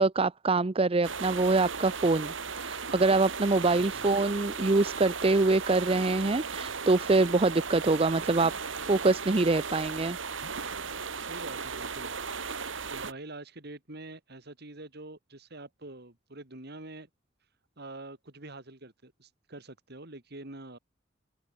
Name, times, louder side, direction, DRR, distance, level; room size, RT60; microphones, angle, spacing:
voice 1, 0.0-8.5 8.9-10.2, right 3 dB, 30° right, 0.6 m, -25 dB
sound 1, 1.0-13.1, right 5 dB, 75° right, 2.4 m, -36 dB
voice 2, 3.7-4.1 11.2-12.1 12.9-17.1 17.8-20.8, right 2 dB, 55° right, 2.9 m, -45 dB
open air
head